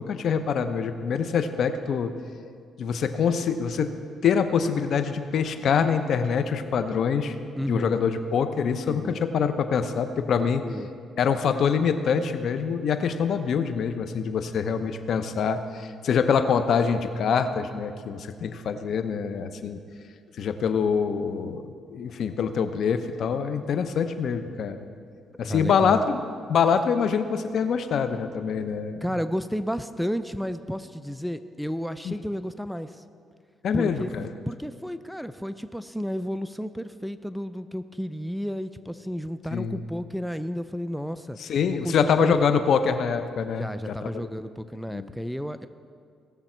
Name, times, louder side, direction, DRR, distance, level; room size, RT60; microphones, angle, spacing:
voice 1, 0.0-2.1 2.8-3.9 4.2-7.4 7.7-10.6 11.2-19.8 20.4-24.9 25.4-26.2 26.5-29.0 32.0-32.1 33.6-34.3 39.5-39.8 41.4-44.3 44.9-45.1, left 6 dB, 65° left, 9 dB, 0.7 m, -25 dB
voice 2, 7.6-8.0 8.8-9.2 10.4-10.9 25.4-26.0 29.0-33.0 33.7-34.1 34.5-41.4 41.6-42.5 43.6-45.7, equal, ahead, 11 dB, 0.4 m, -32 dB
18.0 x 7.0 x 4.4 m, 2.2 s
cardioid pair, 90°, 0 cm